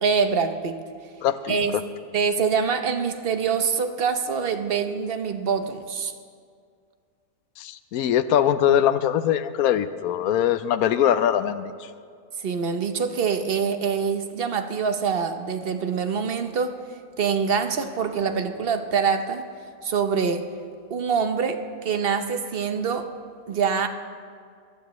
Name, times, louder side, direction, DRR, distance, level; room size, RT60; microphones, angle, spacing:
voice 1, 0.0-0.8 1.5-1.7 2.1-6.1 12.4-16.8 17.2-19.4 19.8-20.4 20.9-23.1 23.5-23.9, right 6 dB, 50° right, 8 dB, 0.9 m, -25 dB
voice 2, 1.2-1.6 7.6-11.9, left 10 dB, 85° left, 13 dB, 1.1 m, -22 dB
22.5 x 15.0 x 3.1 m, 2.2 s
omnidirectional pair, 1.5 m